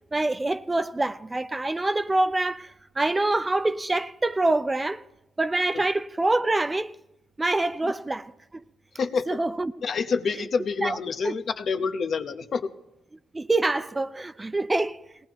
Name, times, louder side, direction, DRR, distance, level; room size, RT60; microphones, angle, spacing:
voice 1, 0.1-5.0 5.4-7.0 7.4-8.6 9.3-9.7 10.3-10.5 10.8-11.3 13.3-15.0, right 2 dB, 20° right, 0.5 m, -26 dB
voice 2, 9.8-12.7, left 5 dB, 55° left, 0.9 m, -27 dB
19.5 x 17.5 x 3.0 m
cardioid pair, 90°, 0 cm